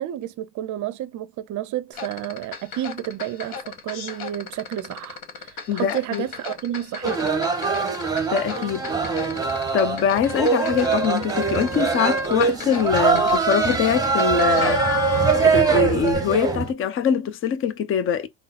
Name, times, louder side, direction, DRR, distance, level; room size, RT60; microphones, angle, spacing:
voice 1, 0.0-7.3, right 12 dB, 40° right, 0.6 m, -31 dB
sound 1, 1.9-15.7 16.0-16.2, left 5 dB, 55° left, 1.3 m, -34 dB
voice 2, 5.7-6.3 8.3-8.8 9.7-18.3, left 7 dB, 30° left, 0.6 m, -23 dB
sound 2, 7.0-16.7, right 5 dB, 10° right, 1.0 m, -22 dB
3.8 x 2.0 x 4.1 m
supercardioid pair, 90°, 46 cm